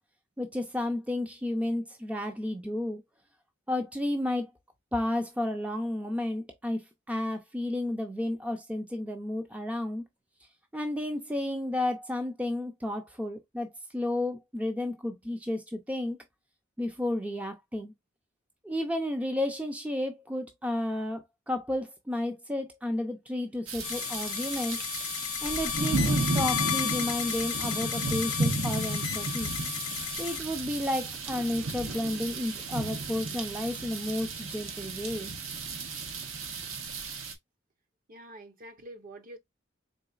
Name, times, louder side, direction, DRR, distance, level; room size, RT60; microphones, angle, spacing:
voice 1, 0.4-3.0 3.7-4.5 4.9-6.8 7.1-10.0 10.7-16.2 16.8-17.9 18.6-24.8 25.4-29.5 30.2-35.3, left 1 dB, 5° right, 0.5 m, -32 dB
sound 1, 23.7-37.3, right 3 dB, 75° right, 0.9 m, -34 dB
sound 2, 23.8-30.4, left 12 dB, 80° left, 0.5 m, -33 dB
voice 2, 38.1-39.4, right 1 dB, 45° right, 0.8 m, -46 dB
3.9 x 3.7 x 2.4 m
head